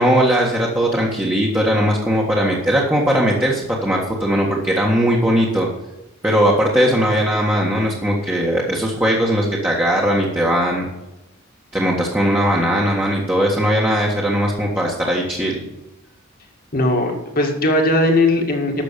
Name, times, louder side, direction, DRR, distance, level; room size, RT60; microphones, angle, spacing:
voice 1, 0.0-5.7 6.2-10.9 11.7-15.6, equal, 10° right, -3 dB, 1.6 m, -19 dB
voice 2, 16.7-18.8, left 1 dB, 45° left, 2 dB, 2.0 m, -18 dB
12.0 x 6.7 x 6.9 m, 0.96 s
head